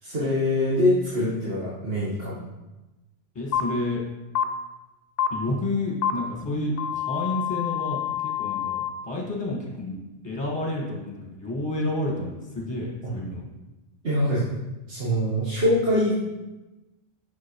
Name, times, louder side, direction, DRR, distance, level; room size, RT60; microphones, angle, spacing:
voice 1, 0.0-2.4 14.0-14.5 14.9-16.1, left 1 dB, 55° right, -9 dB, 1.5 m, -24 dB
voice 2, 3.3-4.0 5.3-10.0 10.2-13.4, left 2 dB, 20° left, -3 dB, 1.6 m, -30 dB
sound 1, 3.5-3.6 4.4-4.5 5.2-5.3 6.0-6.1 6.8-8.9, left 11 dB, 60° left, 0.7 m, -27 dB
5.9 x 5.7 x 3.1 m, 1.1 s
omnidirectional pair, 1.2 m